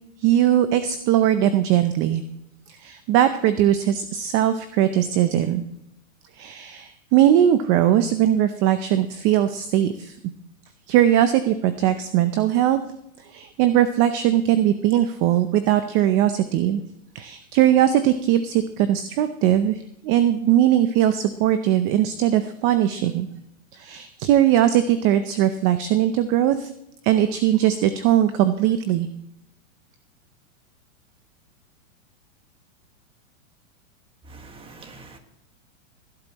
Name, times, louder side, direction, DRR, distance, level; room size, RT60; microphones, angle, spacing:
voice 1, 0.2-2.2 2.7-5.6 6.4-10.1 10.9-12.8 13.3-16.8 17.1-23.3 23.7-26.7 27.0-29.1, right 11 dB, 30° right, 11 dB, 0.7 m, -20 dB
voice 2, 34.3-35.2, right 3 dB, 15° right, 6 dB, 1.6 m, -44 dB
16.5 x 11.5 x 3.0 m, 0.81 s
hypercardioid pair, 140°, 40 cm